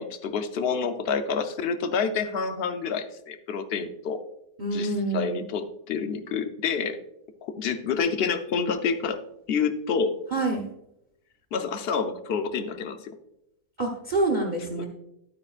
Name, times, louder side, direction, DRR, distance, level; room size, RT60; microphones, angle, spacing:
voice 1, 0.0-4.2 4.7-7.0 7.4-9.2 9.5-10.1 11.5-13.2 14.8-14.9, left 5 dB, 65° left, 8 dB, 0.6 m, -28 dB
voice 2, 4.6-5.4 10.3-10.7 13.8-14.9, right 2 dB, 35° right, 2 dB, 0.9 m, -27 dB
12.0 x 8.7 x 2.4 m, 0.82 s
omnidirectional pair, 1.8 m